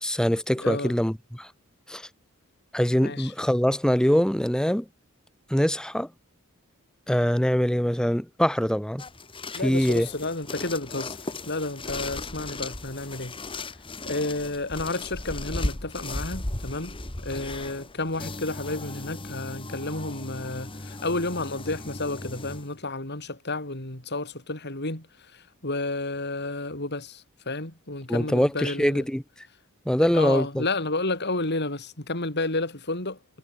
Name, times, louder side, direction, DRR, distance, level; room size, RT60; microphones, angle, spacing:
voice 1, 0.0-1.5 1.9-2.1 2.7-4.8 5.5-6.1 7.1-9.0 9.6-10.1 28.1-29.2 29.9-30.6, equal, 5° left, 1.1 m, -23 dB
voice 2, 0.6-1.0 2.9-3.3 9.5-11.2 11.5-13.3 14.1-16.9 17.2-25.1 25.3-29.0 30.1-33.2, left 2 dB, 50° left, 5.9 m, -31 dB
sound 1, 9.0-22.7, left 2 dB, 25° left, 1.8 m, -36 dB
head